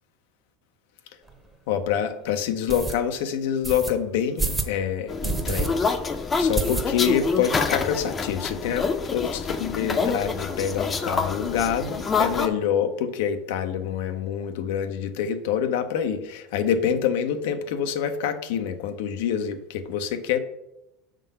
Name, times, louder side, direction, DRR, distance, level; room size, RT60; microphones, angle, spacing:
sound 1, 1.3-1.4 1.9-2.0 2.7-3.0 3.6-3.9 4.4-4.7 5.2-5.7 6.0-6.1 6.6-7.2 7.6-7.7 7.9-8.0 8.3-8.9, right 4 dB, 15° right, 0.9 m, -28 dB
voice 1, 1.7-5.8 6.4-20.4, left 8 dB, 75° left, 8 dB, 0.7 m, -26 dB
sound 2, 5.1-12.5, left 4 dB, 25° left, 0.7 m, -27 dB
6.4 x 3.8 x 5.4 m, 0.88 s
hypercardioid pair, 100°, 0 cm